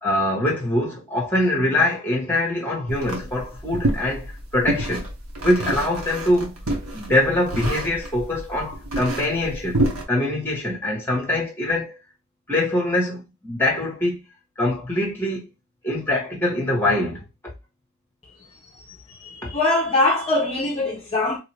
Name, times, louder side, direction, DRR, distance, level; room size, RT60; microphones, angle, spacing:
voice 1, 0.0-5.0 5.4-6.5 6.9-9.8 10.1-12.0 12.5-14.2 14.6-15.4 15.8-17.2 19.4-19.5, left 1 dB, 10° left, 1.0 m, -23 dB
sound 1, 2.9-10.0, right 1 dB, 75° right, 1.0 m, -28 dB
voice 2, 18.7-21.4, left 2 dB, 30° left, 0.5 m, -23 dB
2.8 x 2.4 x 3.1 m
head